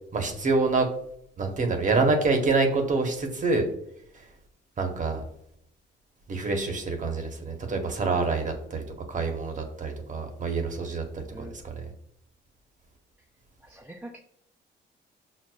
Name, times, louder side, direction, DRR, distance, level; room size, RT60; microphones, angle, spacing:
voice 1, 0.1-0.9 1.4-3.7 4.8-5.2 6.3-11.9, right 3 dB, 40° right, 4 dB, 0.9 m, -26 dB
voice 2, 13.6-14.2, right 1 dB, 5° right, 0 dB, 0.4 m, -43 dB
5.8 x 2.0 x 2.2 m, 0.71 s
cardioid pair, 90°, 20 cm